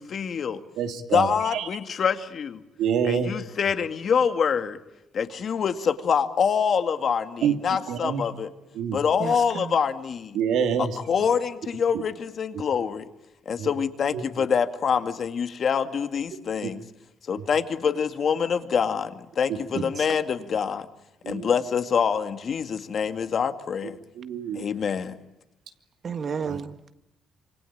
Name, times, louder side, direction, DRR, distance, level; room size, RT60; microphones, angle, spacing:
voice 1, 0.0-0.6 1.1-2.6 3.0-4.8 5.1-8.5 8.9-10.4 10.8-13.0 13.5-16.8 17.3-20.9 21.3-24.0 24.6-25.2, left 7 dB, 45° left, 2.1 m, -25 dB
voice 2, 0.8-1.7 2.8-3.3 7.4-7.5 7.9-8.2 8.7-9.0 10.3-10.9 13.6-13.7 14.1-14.2 16.6-16.7 19.7-19.8 21.2-21.5 24.2-24.7 26.4-26.6, right 7 dB, 85° right, 2.8 m, -26 dB
voice 3, 9.2-9.7 19.7-20.1 26.0-26.9, right 6 dB, 40° right, 1.6 m, -32 dB
27.0 x 25.0 x 8.7 m
cardioid pair, 135°, 0 cm